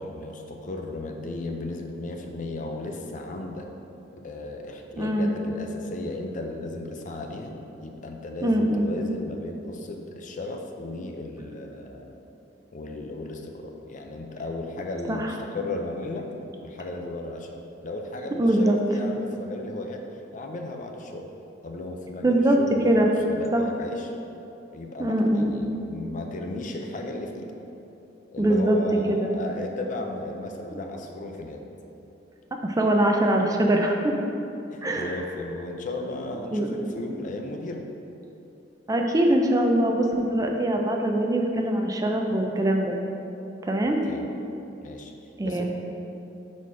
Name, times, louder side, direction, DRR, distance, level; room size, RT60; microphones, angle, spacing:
voice 1, 0.0-3.7 4.2-12.1 12.7-16.3 16.6-20.0 20.3-21.3 21.6-24.1 24.7-27.5 28.3-31.6 34.7-37.8 43.8-44.2 44.8-45.1 45.4-45.6, left 2 dB, 45° left, 3 dB, 0.5 m, -35 dB
voice 2, 5.0-5.3 8.4-8.9 15.1-15.3 18.4-18.8 22.2-22.6 22.8-23.1 23.5-23.6 25.0-25.5 28.4-28.8 29.1-29.3 30.7-30.8 32.6-34.2 34.8-35.1 36.5-36.9 38.9-43.0 43.6-44.0 45.4-45.6, right 1 dB, 20° right, 2 dB, 0.4 m, -22 dB
5.5 x 4.2 x 4.7 m, 2.9 s
head